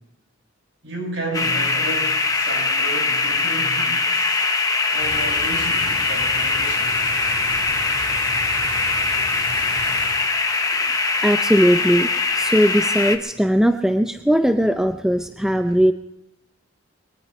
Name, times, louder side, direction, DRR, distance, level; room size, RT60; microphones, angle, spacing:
voice 1, 0.8-4.5 4.9-7.1, right 2 dB, 60° right, 0 dB, 6.4 m, -32 dB
sound 1, 1.3-13.2, left 3 dB, 15° left, 0.9 m, -22 dB
sound 2, 5.0-10.3, right 1 dB, 85° right, 5.5 m, -34 dB
voice 2, 11.2-12.1 12.4-15.9, equal, 5° right, 7 dB, 0.5 m, -18 dB
22.0 x 18.5 x 3.2 m, 0.86 s
head